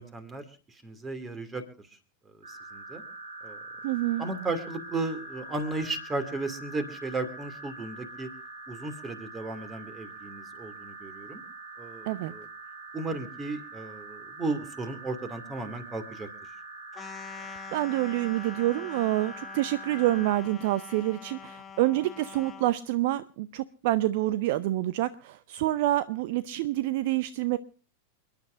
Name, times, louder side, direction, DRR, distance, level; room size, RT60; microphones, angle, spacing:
voice 1, 0.0-1.6 2.5-3.0 3.4-3.6 4.2-8.3 8.7-11.4 11.8-12.5 12.9-16.3, right 3 dB, 15° right, 10 dB, 2.5 m, -35 dB
sound 1, 2.4-20.3, right 2 dB, 70° right, 3.1 m, -44 dB
voice 2, 3.8-4.3 12.1-12.3 17.4-17.5 17.7-27.6, right 15 dB, 50° right, 16 dB, 0.5 m, -27 dB
sound 2, 16.9-22.7, left 7 dB, 15° left, 1.6 m, -45 dB
29.0 x 10.5 x 2.6 m, 0.37 s
figure-of-eight pair, 90°, 0 cm